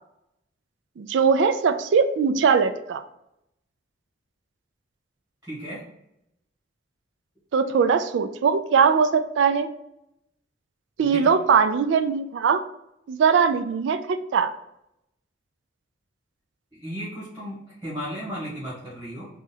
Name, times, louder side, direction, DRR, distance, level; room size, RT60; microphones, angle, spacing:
voice 1, 1.0-3.0 7.5-9.7 11.0-12.6 13.1-14.5, right 6 dB, 80° right, 10 dB, 0.3 m, -21 dB
voice 2, 5.4-5.8 11.0-11.3 16.7-19.3, equal, 10° right, -9 dB, 1.4 m, -35 dB
3.9 x 2.4 x 4.0 m, 0.82 s
head